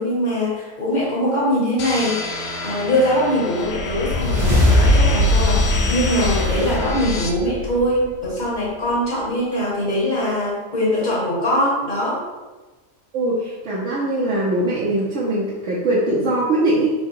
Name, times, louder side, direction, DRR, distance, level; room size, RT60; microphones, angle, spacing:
voice 1, 0.0-12.2, equal, 35° left, -7 dB, 1.5 m, -22 dB
sound 1, 1.8-7.3, left 3 dB, 65° left, 0.7 m, -30 dB
sound 2, 3.7-8.3, left 1 dB, 80° right, 1.8 m, -19 dB
voice 2, 13.1-16.9, right 1 dB, 60° right, -7 dB, 1.1 m, -21 dB
4.4 x 2.2 x 4.6 m, 1.2 s
omnidirectional pair, 1.4 m